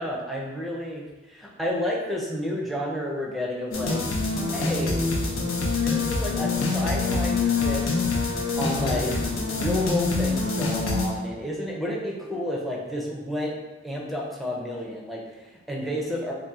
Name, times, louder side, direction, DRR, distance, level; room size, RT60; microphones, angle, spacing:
voice 1, 0.0-4.0 4.5-5.0 5.6-8.0 8.3-9.2 9.5-13.6 13.8-16.3, left 1 dB, ahead, -2 dB, 0.5 m, -31 dB
sound 1, 3.7-11.1, left 3 dB, 90° left, 0.6 m, -25 dB
2.7 x 2.5 x 3.6 m, 1.1 s
head